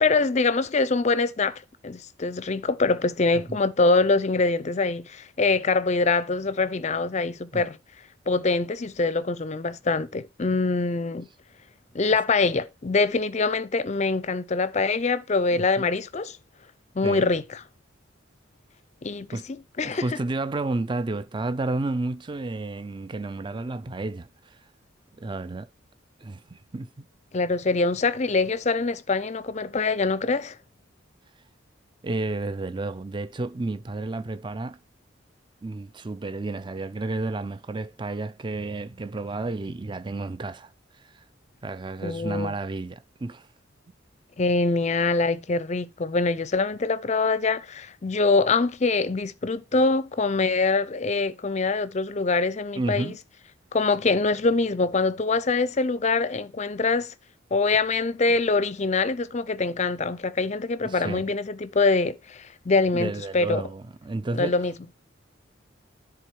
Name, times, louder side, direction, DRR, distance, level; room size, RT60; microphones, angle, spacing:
voice 1, 0.0-7.8 8.3-11.3 11.9-16.4 17.0-17.6 19.0-20.0 27.3-30.6 42.0-42.5 44.4-53.1 53.7-57.1 57.5-63.6 64.3-64.7, left 3 dB, 35° left, 0.5 m, -24 dB
voice 2, 15.5-15.9 17.0-17.3 19.3-19.5 19.8-24.6 25.2-25.7 26.2-27.1 32.0-34.8 35.6-40.7 41.0-41.1 41.6-43.5 52.7-53.2 60.8-61.2 62.9-64.5, right 2 dB, 25° right, 0.5 m, -31 dB
10.5 x 3.8 x 4.6 m
head